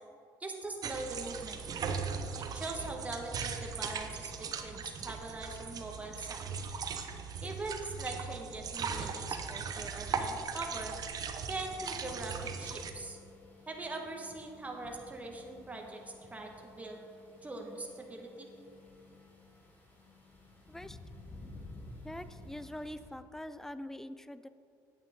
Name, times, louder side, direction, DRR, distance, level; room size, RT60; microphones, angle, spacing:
voice 1, 0.4-1.6 2.4-6.4 7.4-10.9 11.5-13.2 13.7-16.0 16.3-17.0 17.4-18.5, right 2 dB, 15° right, 1 dB, 1.4 m, -42 dB
sound 1, 0.8-12.9, right 6 dB, 50° right, 0.8 m, -38 dB
sound 2, 11.4-23.1, left 2 dB, 25° left, 2.4 m, -54 dB
voice 2, 20.7-21.0 22.0-24.5, left 1 dB, 5° left, 13 dB, 0.4 m, -44 dB
8.9 x 8.8 x 3.7 m, 2.5 s
supercardioid pair, 85°, 8 cm